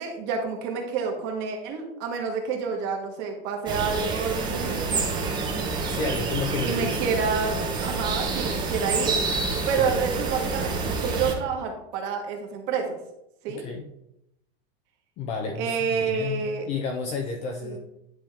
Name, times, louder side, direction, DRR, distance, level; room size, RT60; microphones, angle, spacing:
voice 1, 0.0-5.2 6.6-9.1 9.7-13.0 13.4-13.6 15.6-16.7 17.6-17.8, right 5 dB, 35° right, 2 dB, 1.3 m, -29 dB
sound 1, 3.7-11.3, right 4 dB, 15° right, 0.8 m, -28 dB
voice 2, 5.9-6.9 9.8-9.9 13.5-13.9 15.2-17.8, left 4 dB, 20° left, 4 dB, 0.4 m, -31 dB
10.0 x 3.5 x 3.5 m, 0.83 s
supercardioid pair, 165°, 30 cm